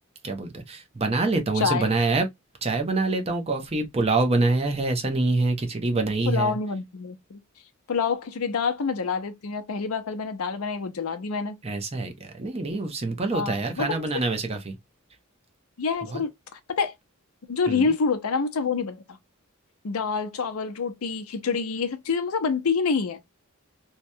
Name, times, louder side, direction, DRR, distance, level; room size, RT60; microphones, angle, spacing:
voice 1, 0.2-2.3 2.6-6.6 11.6-14.8 16.1-16.2 17.7-17.9, right 3 dB, 30° right, 0.6 m, -25 dB
voice 2, 1.6-1.9 6.3-7.4 7.9-11.6 13.3-14.1 15.8-17.0 17.5-19.0 19.8-23.2, left 5 dB, 90° left, 0.6 m, -27 dB
2.8 x 2.2 x 2.6 m
head